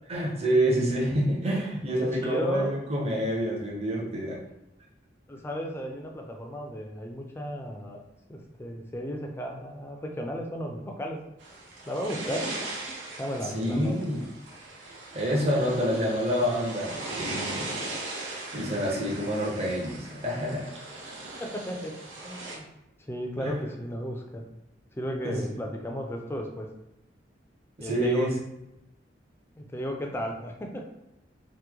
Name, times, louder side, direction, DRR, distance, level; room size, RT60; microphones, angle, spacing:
voice 1, 0.1-4.4 13.5-14.2 15.1-17.7 18.5-20.7 23.4-23.6 25.2-25.4 27.8-28.3, equal, 35° right, -4 dB, 0.7 m, -27 dB
voice 2, 2.0-2.7 5.3-8.0 8.3-11.2 11.9-12.5 13.1-14.0 21.4-21.9 22.2-22.6 23.1-24.4 25.0-26.7 27.8-28.3 29.6-30.9, equal, 15° left, 2 dB, 0.4 m, -34 dB
sound 1, 11.4-22.6, right 2 dB, 90° right, 0.8 m, -39 dB
3.0 x 2.1 x 3.5 m, 0.89 s
head